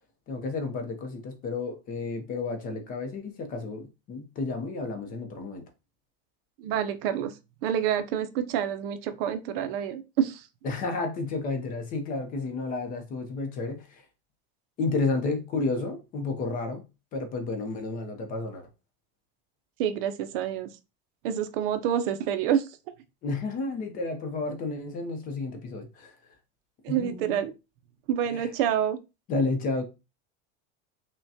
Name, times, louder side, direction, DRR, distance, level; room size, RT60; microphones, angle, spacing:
voice 1, 0.3-5.6 10.6-14.0 14.8-16.8 17.1-18.7 23.2-26.2 26.9-27.4 28.3-28.5 29.3-29.8, left 3 dB, 25° left, 0.6 m, -31 dB
voice 2, 6.6-7.3 7.6-10.4 19.8-20.7 21.2-22.6 26.8-27.5 28.1-29.0, right 9 dB, 60° right, 0.6 m, -27 dB
5.8 x 2.2 x 2.7 m
cardioid pair, 175°, 32 cm